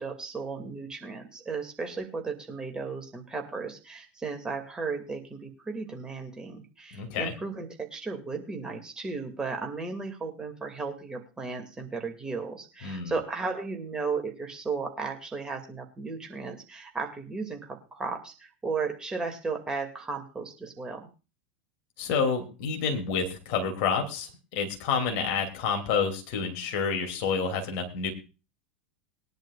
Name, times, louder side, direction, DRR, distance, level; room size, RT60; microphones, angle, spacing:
voice 1, 0.0-21.1, right 4 dB, 15° right, 3 dB, 2.4 m, -35 dB
voice 2, 6.9-7.3 12.8-13.1 22.0-28.1, left 5 dB, 45° left, 3 dB, 2.9 m, -29 dB
21.5 x 10.5 x 2.5 m, 0.31 s
figure-of-eight pair, 85°, 6 cm